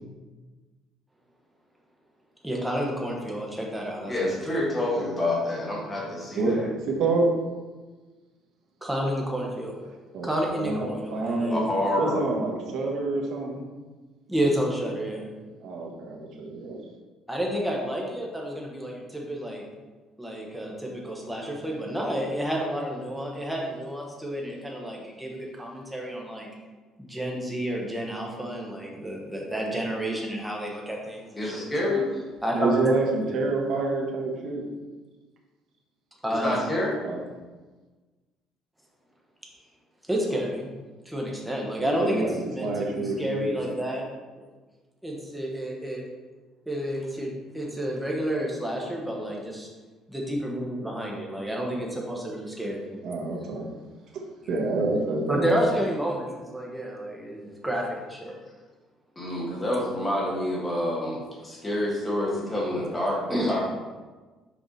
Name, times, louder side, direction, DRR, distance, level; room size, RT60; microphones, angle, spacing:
voice 1, 2.4-4.5 8.8-9.8 10.2-11.6 14.3-15.3 17.3-19.6 20.2-26.5 27.1-31.9 32.4-33.0 36.2-36.6 40.1-40.7 41.0-44.0 45.0-46.0 46.7-49.7 50.1-52.9 55.3-58.3 63.3-63.5, equal, 5° right, -2 dB, 1.1 m, -30 dB
voice 2, 4.1-6.7 11.1-12.2 31.4-32.0 36.3-37.0 59.2-63.6, left 1 dB, 15° left, -4 dB, 1.5 m, -28 dB
voice 3, 6.4-7.3 10.1-11.6 12.0-13.6 15.6-16.8 32.5-34.6 37.0-37.2 41.8-43.5 53.0-53.7 54.5-55.6, right 3 dB, 55° right, -1 dB, 1.3 m, -27 dB
6.2 x 4.8 x 4.1 m, 1.3 s
cardioid pair, 165°, 0 cm